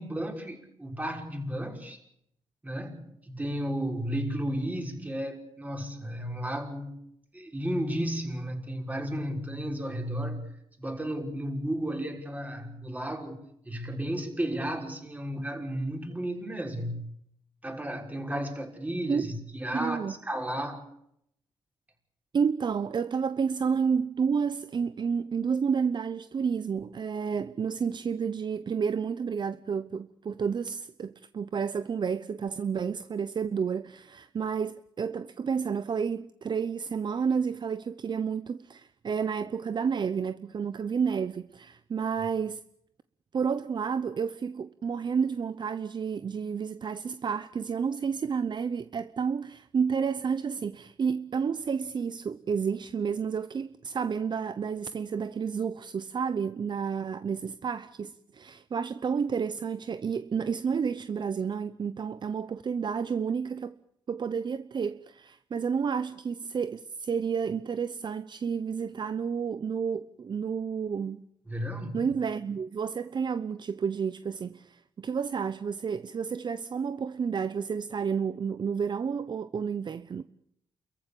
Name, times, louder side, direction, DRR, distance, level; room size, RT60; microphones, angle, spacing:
voice 1, 0.0-2.0 2.6-7.0 7.3-17.0 17.6-20.8 71.5-72.1, equal, 15° right, 5.9 m, -33 dB
voice 2, 19.7-20.1 22.3-42.6 43.3-63.7 64.1-71.2 71.9-80.2, right 6 dB, 50° right, 0.9 m, -30 dB
29.0 x 15.0 x 8.7 m
cardioid pair, 80°, 10 cm